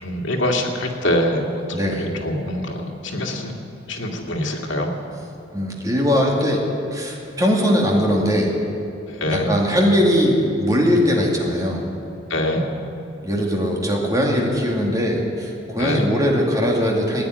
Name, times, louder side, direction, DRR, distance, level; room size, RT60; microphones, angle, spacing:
voice 1, 0.0-3.5 3.9-4.9 9.1-9.5 12.3-12.7 15.8-16.1, left 1 dB, 80° left, 0 dB, 2.1 m, -24 dB
voice 2, 1.7-2.1 5.5-6.6 6.9-8.5 9.3-11.8 13.2-17.2, equal, 20° right, -1 dB, 2.4 m, -20 dB
16.0 x 9.3 x 9.7 m, 2.7 s
head